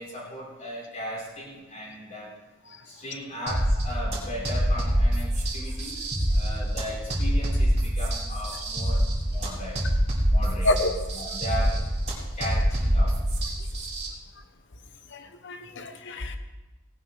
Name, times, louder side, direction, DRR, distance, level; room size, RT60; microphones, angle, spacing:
voice 1, 0.0-2.4 2.8-6.1 6.3-9.8 10.3-10.8 11.1-11.9 12.3-13.2, equal, 35° left, -5 dB, 4.8 m, -37 dB
sound 1, 3.5-14.1, equal, 30° right, 2.9 m, -25 dB
voice 2, 15.1-16.4, left 1 dB, 55° left, 8 dB, 1.0 m, -28 dB
18.0 x 11.5 x 3.4 m, 1.1 s
head